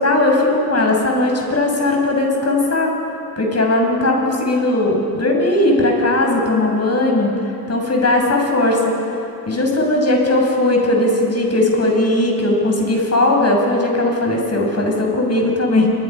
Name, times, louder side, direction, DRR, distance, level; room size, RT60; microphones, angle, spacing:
voice 1, 0.0-2.9 3.4-7.3 7.7-8.9 9.5-15.9, left 2 dB, 40° left, 1 dB, 6.4 m, -17 dB
27.5 x 23.0 x 5.6 m, 2.9 s
cardioid pair, 65°, 40 cm